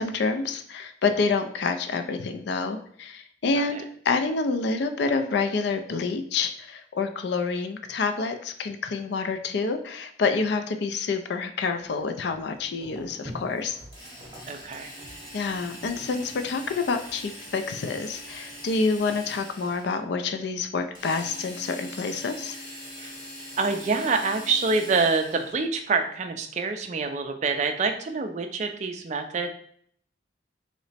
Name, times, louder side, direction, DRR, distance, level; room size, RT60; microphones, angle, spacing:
voice 1, 0.0-3.8 4.0-13.8 15.3-22.6, left 4 dB, 60° left, 8 dB, 0.3 m, -28 dB
voice 2, 3.5-3.8 14.5-14.9 23.0-23.1 23.6-29.5, right 4 dB, 35° right, 6 dB, 0.3 m, -26 dB
sound 1, 11.8-19.0, equal, 20° right, 0.8 m, -48 dB
Drill, 13.9-20.0 21.0-25.6, equal, 20° left, 0.8 m, -42 dB
3.0 x 2.0 x 4.0 m, 0.62 s
head